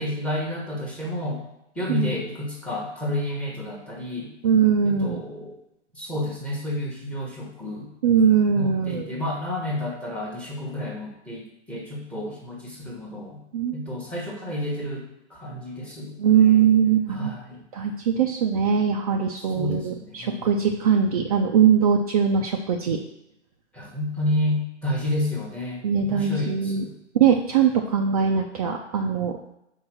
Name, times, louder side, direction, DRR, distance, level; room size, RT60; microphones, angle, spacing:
voice 1, 0.0-1.4 1.7-4.3 4.8-5.6 5.9-7.9 8.6-13.4 13.7-16.2 17.1-17.6 19.4-20.5 23.7-26.9, left 1 dB, 5° left, -2 dB, 1.2 m, -30 dB
voice 2, 4.4-5.2 8.0-9.1 13.5-13.8 16.2-17.3 17.7-23.0 25.8-26.8 27.1-29.6, right 7 dB, 35° right, 1 dB, 0.6 m, -21 dB
5.4 x 4.9 x 6.1 m, 0.84 s
hypercardioid pair, 145°, 36 cm